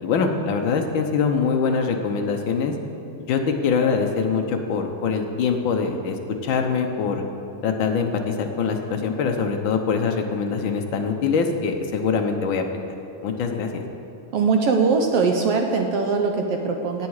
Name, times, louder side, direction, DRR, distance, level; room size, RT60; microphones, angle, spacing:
voice 1, 0.0-2.7 3.3-7.2 7.6-12.6 13.2-13.8, left 5 dB, 75° left, 3 dB, 1.1 m, -23 dB
voice 2, 14.3-17.1, right 4 dB, 70° right, 4 dB, 1.5 m, -21 dB
17.5 x 8.3 x 4.8 m, 2.7 s
omnidirectional pair, 3.3 m